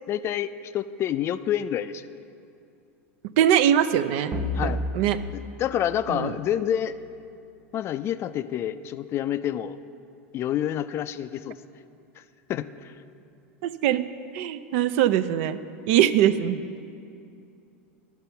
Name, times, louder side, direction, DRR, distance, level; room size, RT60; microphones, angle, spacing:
voice 1, 0.1-2.0 4.5-4.8 5.3-7.0 7.7-9.8 10.3-11.5 12.5-12.9, left 10 dB, 35° left, 13 dB, 0.3 m, -28 dB
voice 2, 3.4-4.3 4.6-5.2 6.1-6.3 13.6-14.1 14.3-15.6 15.9-16.6, right 10 dB, 60° right, 13 dB, 0.4 m, -22 dB
sound 1, 4.3-6.9, left 1 dB, 30° right, 0.7 m, -33 dB
11.5 x 6.0 x 5.6 m, 2.6 s
hypercardioid pair, 100°, 7 cm